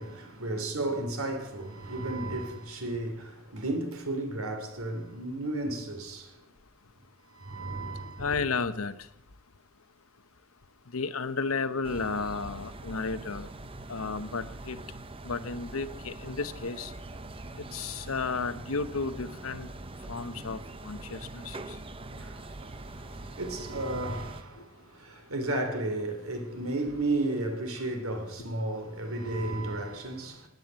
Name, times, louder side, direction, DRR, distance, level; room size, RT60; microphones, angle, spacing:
voice 1, 0.0-6.4 7.3-8.2 22.1-30.5, right 2 dB, 90° right, 3.1 m, -33 dB
voice 2, 8.2-9.1 10.9-13.5 13.9-14.8 15.2-16.9 17.6-19.7 20.1-21.8 24.6-24.7, left 4 dB, 80° left, 1.0 m, -33 dB
sound 1, 11.8-24.4, right 2 dB, 25° right, 0.8 m, -43 dB
18.0 x 9.2 x 8.3 m
head